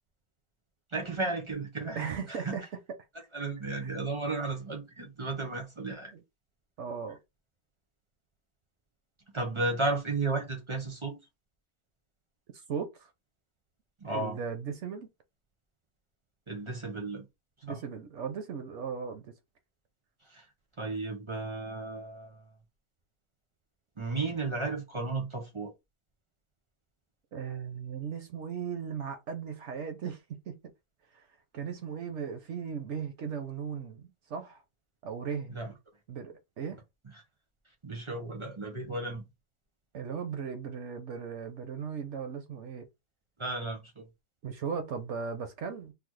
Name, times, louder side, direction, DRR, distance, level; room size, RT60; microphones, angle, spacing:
voice 1, 0.9-2.6 3.3-6.1 9.3-11.2 14.0-14.4 16.5-17.2 17.7-17.8 20.3-20.5 20.8-22.4 24.0-25.7 35.5-35.7 37.8-39.2 43.4-44.0, right 3 dB, 45° right, 0.4 m, -34 dB
voice 2, 2.0-2.6 6.1-6.2 6.8-7.2 12.5-13.1 14.1-15.1 17.6-19.3 27.3-30.6 31.1-31.3 31.5-34.6 35.0-35.6 36.1-36.8 39.9-42.9 44.4-45.9, right 6 dB, 65° right, 0.7 m, -37 dB
3.3 x 2.1 x 3.1 m
omnidirectional pair, 1.6 m